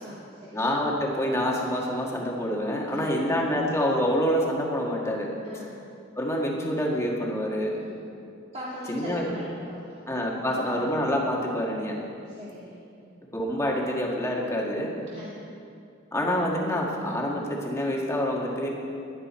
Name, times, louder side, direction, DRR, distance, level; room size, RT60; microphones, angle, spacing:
voice 1, 0.0-0.7 3.0-3.2 5.4-5.8 7.7-8.0 8.5-10.0 10.5-10.8 12.3-13.2 15.1-15.4, equal, 30° right, -7 dB, 1.9 m, -41 dB
voice 2, 0.5-5.3 6.1-7.8 8.9-9.3 10.1-12.0 13.3-14.9 16.1-18.7, equal, 15° left, -2 dB, 1.7 m, -27 dB
16.5 x 11.0 x 4.4 m, 2.5 s
head